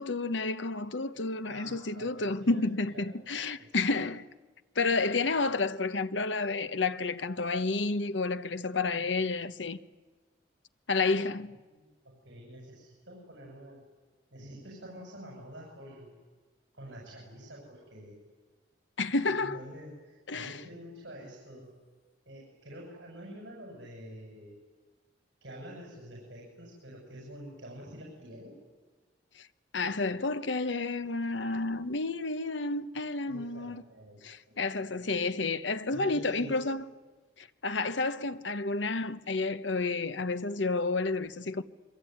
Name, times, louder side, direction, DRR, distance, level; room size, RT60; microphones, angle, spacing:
voice 1, 0.0-4.3 4.7-9.8 10.9-11.6 19.0-19.6 20.3-20.6 29.4-29.5 29.7-33.8 34.2-36.8 37.4-41.6, left 3 dB, 75° left, 1.1 m, -30 dB
voice 2, 1.4-2.6 2.9-3.2 3.6-3.8 11.7-13.8 14.3-16.1 16.7-18.2 19.1-21.7 22.3-24.5 25.4-28.5 33.3-34.2 34.5-34.6 35.9-36.6, equal, 70° right, 7.8 m, -47 dB
26.5 x 23.5 x 9.5 m
head